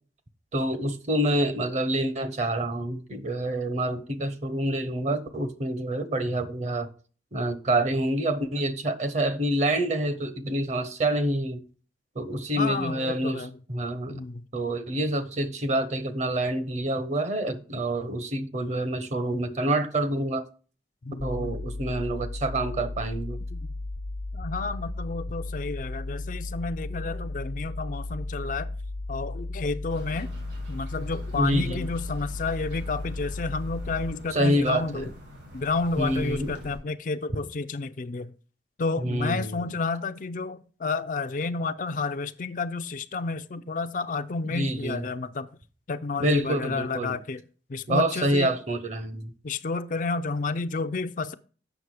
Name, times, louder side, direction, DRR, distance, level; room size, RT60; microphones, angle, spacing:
voice 1, 0.5-6.9 7.3-11.6 12.1-14.2 14.5-20.4 21.2-23.4 31.4-31.9 34.3-35.1 36.0-36.5 39.0-39.7 44.4-45.0 46.2-47.1 47.9-49.3, right 1 dB, 40° right, 0.9 m, -27 dB
voice 2, 12.6-13.6 14.1-14.5 21.0-21.6 23.5-23.7 24.3-28.7 29.1-30.3 30.7-35.1 35.5-38.3 38.8-45.5 45.9-47.4 47.7-48.5 49.4-51.3, left 3 dB, 45° left, 0.4 m, -31 dB
sound 1, 21.2-34.1, left 2 dB, 85° left, 1.1 m, -35 dB
sound 2, 29.9-36.8, equal, 80° right, 4.2 m, -45 dB
8.0 x 6.2 x 4.8 m
head